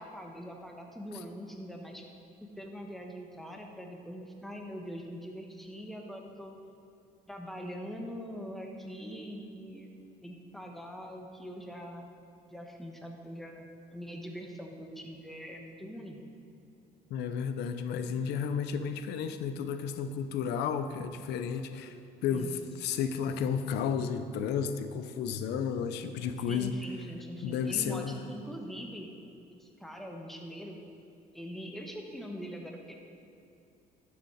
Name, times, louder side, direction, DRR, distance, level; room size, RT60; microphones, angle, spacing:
voice 1, 0.0-2.0 2.4-6.5 7.3-9.9 10.2-12.1 12.5-16.2 22.3-22.5 26.5-29.1 29.5-30.8 31.3-32.9, equal, ahead, 1 dB, 1.3 m, -43 dB
voice 2, 17.1-26.8 27.4-28.2, left 7 dB, 80° left, 10 dB, 0.7 m, -32 dB
12.0 x 7.4 x 4.7 m, 2.7 s
cardioid pair, 110°, 17 cm